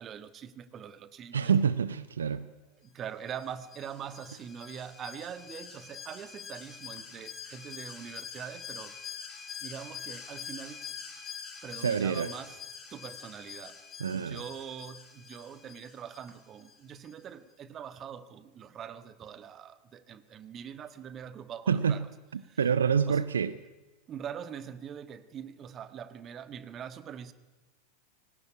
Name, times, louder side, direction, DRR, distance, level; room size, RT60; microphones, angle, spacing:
voice 1, 0.0-1.5 2.8-9.0 9.6-10.9 11.6-12.6 12.9-13.8 14.1-22.1 22.4-22.6 23.1-23.3 24.1-27.3, right 8 dB, 30° right, 1.5 m, -43 dB
voice 2, 1.3-2.5 11.8-12.3 14.0-14.4 21.7-22.0 22.3-23.6, right 7 dB, 70° right, 0.7 m, -27 dB
Alarm, 3.3-16.8 17.1-17.2, left 7 dB, 20° left, 4.6 m, -45 dB
22.0 x 18.0 x 9.8 m
figure-of-eight pair, 90°, 0 cm